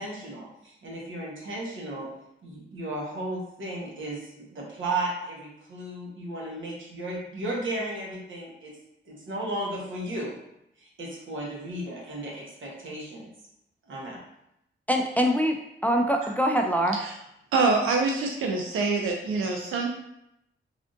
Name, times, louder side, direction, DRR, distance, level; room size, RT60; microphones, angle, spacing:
voice 1, 0.0-2.1 2.4-8.7 9.0-10.4 10.8-13.3 13.8-14.2, right 1 dB, 70° right, -3 dB, 1.1 m, -34 dB
voice 2, 14.9-17.0, equal, 5° left, 3 dB, 0.3 m, -24 dB
voice 3, 17.5-19.9, right 3 dB, 90° right, 1 dB, 0.4 m, -25 dB
3.4 x 2.5 x 2.5 m, 0.80 s
cardioid pair, 65°, 21 cm